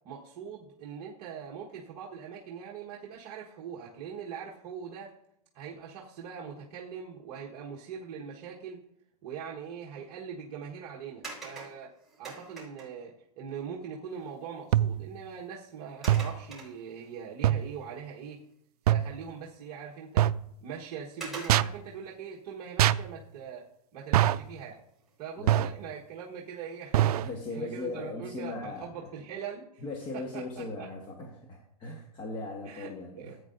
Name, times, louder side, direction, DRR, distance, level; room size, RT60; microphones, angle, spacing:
voice 1, 0.0-5.2 5.5-8.8 9.2-18.4 18.8-20.3 20.6-23.6 23.9-24.8 25.2-29.8 30.1-30.4 30.8-30.9 32.6-32.9 33.1-33.4, right 7 dB, 40° right, -4 dB, 1.3 m, -42 dB
sound 1, 11.2-13.1 14.3-14.4 14.8-15.0 16.0-17.2 17.7-17.8 20.2-20.3 21.2-21.9 24.2-24.6 25.1-25.2, right 3 dB, ahead, 4.2 m, -44 dB
sound 2, 14.7-15.1 16.1-16.4 17.4-17.7 18.9-19.2 20.2-20.5 21.5-21.8 22.8-23.1 24.1-24.5 25.5-25.8 26.9-27.3, right 12 dB, 70° right, 0.4 m, -24 dB
voice 2, 25.4-25.8 27.2-29.1 29.8-33.4, left 3 dB, 25° left, 0 dB, 1.3 m, -39 dB
15.5 x 8.5 x 2.6 m, 0.74 s
hypercardioid pair, 150°, 20 cm